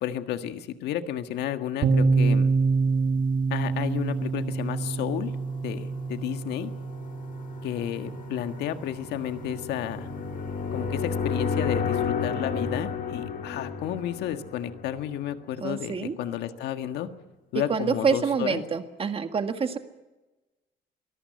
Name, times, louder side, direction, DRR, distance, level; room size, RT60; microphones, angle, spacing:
voice 1, 0.0-2.5 3.5-5.3 5.6-6.7 7.6-10.1 10.7-17.1 17.5-18.6, left 11 dB, 80° left, 8 dB, 1.7 m, -32 dB
sound 1, 1.8-9.5, right 4 dB, 55° right, 2.0 m, -27 dB
sound 2, 4.8-15.5, left 5 dB, 55° left, 4.0 m, -33 dB
voice 2, 15.6-16.2 17.5-19.8, right 6 dB, 35° right, 8 dB, 1.8 m, -27 dB
23.0 x 14.5 x 9.5 m, 1.1 s
cardioid pair, 110°, 17 cm